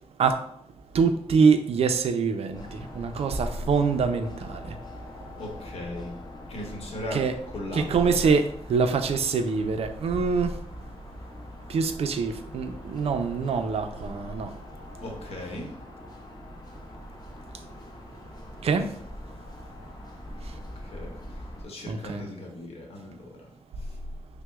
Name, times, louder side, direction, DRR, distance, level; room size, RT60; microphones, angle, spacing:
voice 1, 0.9-4.8 7.1-7.3 7.7-10.6 11.7-14.6 17.5-17.7 18.6-19.0 20.4-20.6 21.9-22.2, right 5 dB, 70° right, 0.4 m, -25 dB
sound 1, 2.5-21.6, left 1 dB, 40° left, 0.6 m, -43 dB
voice 2, 5.4-6.1 6.5-7.2 7.5-8.2 15.0-15.7 20.7-23.5 23.8-24.0, left 1 dB, 75° left, 0.9 m, -38 dB
5.8 x 2.0 x 2.3 m
wide cardioid pair, 120°, 11 cm